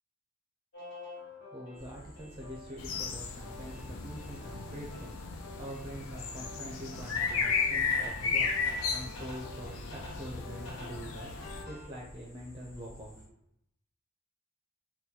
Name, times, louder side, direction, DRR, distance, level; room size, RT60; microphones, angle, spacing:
sound 1, 0.7-11.9, left 2 dB, 60° left, 1.1 m, -49 dB
voice 1, 1.2-13.2, equal, 25° right, -2 dB, 0.4 m, -45 dB
sound 2, 1.7-13.3, equal, 15° left, 1.0 m, -54 dB
sound 3, 2.8-11.6, left 5 dB, 85° left, 0.4 m, -34 dB
3.9 x 2.2 x 2.8 m, 0.76 s
head